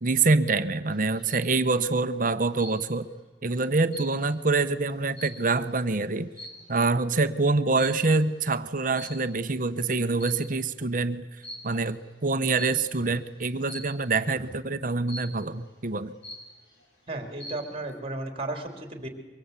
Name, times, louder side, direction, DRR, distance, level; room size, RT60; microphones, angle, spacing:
voice 1, 0.0-3.1 3.4-6.3 6.7-11.2 11.6-16.1, right 3 dB, 50° right, 11 dB, 1.1 m, -25 dB
sound 1, 0.9-1.5 2.6-3.1 3.5-5.8 6.3-6.8 7.8-8.2 9.0-9.6 10.0-10.7 11.4-11.8 12.6-13.0 13.7-14.1 15.1-15.6 16.0-16.1 16.2-16.8 17.2-17.7, equal, 80° left, 7.8 m, -43 dB
voice 2, 17.1-19.1, right 2 dB, 35° right, 4 dB, 3.7 m, -34 dB
24.5 x 23.0 x 8.4 m, 1.2 s
head